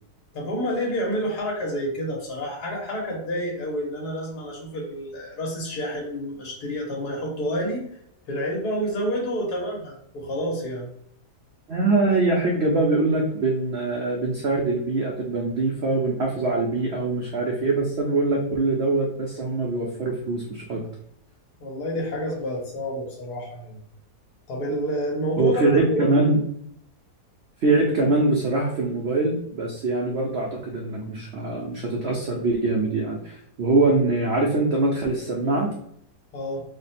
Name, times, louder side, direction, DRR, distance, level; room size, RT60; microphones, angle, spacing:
voice 1, 0.3-7.8 8.3-10.9 21.6-23.8 24.5-25.6 25.9-26.0 36.3-36.6, equal, 75° left, -2 dB, 1.6 m, -29 dB
voice 2, 11.7-20.8 25.4-26.4 27.6-35.7, right 2 dB, 65° right, 0 dB, 0.6 m, -23 dB
3.3 x 2.1 x 4.1 m, 0.70 s
omnidirectional pair, 1.7 m